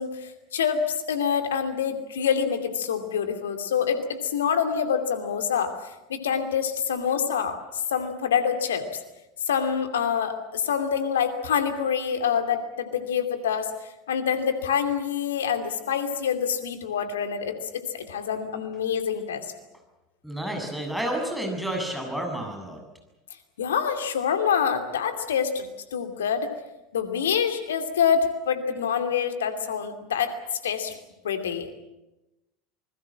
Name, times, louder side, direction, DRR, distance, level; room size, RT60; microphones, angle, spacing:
voice 1, 0.0-5.7 6.1-8.9 9.5-13.7 14.1-19.4 23.6-26.5 26.9-30.4 30.6-30.9 31.2-31.7, left 7 dB, 70° left, 7 dB, 2.6 m, -26 dB
voice 2, 20.2-22.8, right 1 dB, ahead, 2 dB, 7.6 m, -30 dB
26.5 x 21.0 x 7.6 m, 0.98 s
figure-of-eight pair, 75°, 0 cm